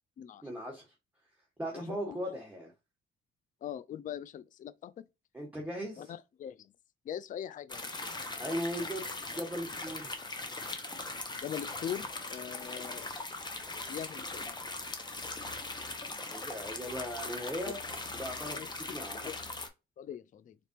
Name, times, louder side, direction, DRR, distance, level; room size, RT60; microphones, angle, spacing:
voice 1, 0.4-0.9 1.6-2.7 5.3-6.1 8.4-10.2 16.3-17.8 18.1-19.2, equal, 5° right, 1.5 m, -38 dB
voice 2, 1.7-2.4 3.6-5.0 6.0-6.7 7.1-8.0 11.4-13.1 13.9-14.6 18.5-19.3 20.0-20.6, left 9 dB, 40° left, 0.4 m, -42 dB
sound 1, 7.7-19.7, left 2 dB, 20° left, 1.0 m, -40 dB
4.0 x 3.4 x 2.8 m
cardioid pair, 90°, 20 cm